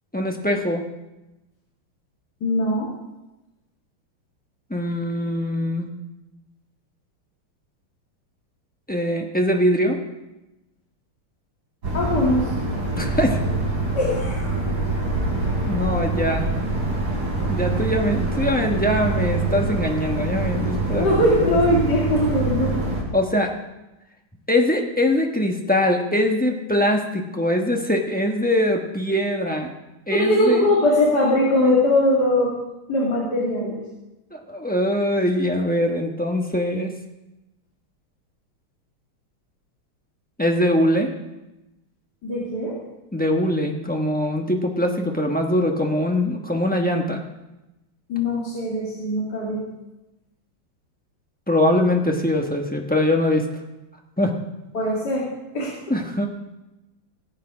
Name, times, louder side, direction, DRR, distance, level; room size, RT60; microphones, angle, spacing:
voice 1, 0.1-0.8 4.7-5.9 8.9-10.0 13.0-13.4 15.7-16.5 17.5-21.6 23.1-23.5 24.5-29.7 30.1-30.7 34.3-36.9 40.4-41.1 43.1-47.2 51.5-53.4 54.2-54.3 55.9-56.3, left 1 dB, 10° left, 1 dB, 0.5 m, -22 dB
voice 2, 2.4-2.9 11.9-12.5 14.0-14.6 21.0-22.8 30.1-32.5 32.9-33.8 42.2-42.7 48.1-49.6 54.7-55.2 55.5-55.7, left 1 dB, 50° left, -5 dB, 2.7 m, -21 dB
sound 1, 11.8-23.0, right 2 dB, 50° right, 4.7 m, -25 dB
18.0 x 8.4 x 4.9 m, 0.99 s
omnidirectional pair, 2.3 m